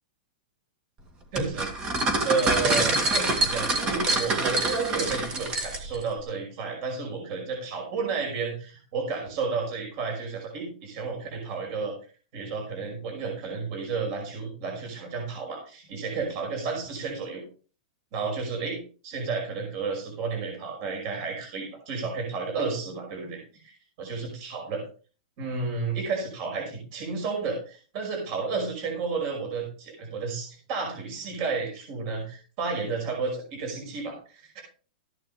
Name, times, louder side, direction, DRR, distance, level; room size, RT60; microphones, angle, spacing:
voice 1, 1.3-11.9 12.3-17.4 18.1-23.7 24.0-24.8 25.4-34.6, right 4 dB, 40° right, 1 dB, 5.6 m, -32 dB
sound 1, 1.4-6.0, right 2 dB, 20° right, 2.1 m, -26 dB
14.0 x 11.0 x 3.3 m, 0.38 s
supercardioid pair, 165°, 5 cm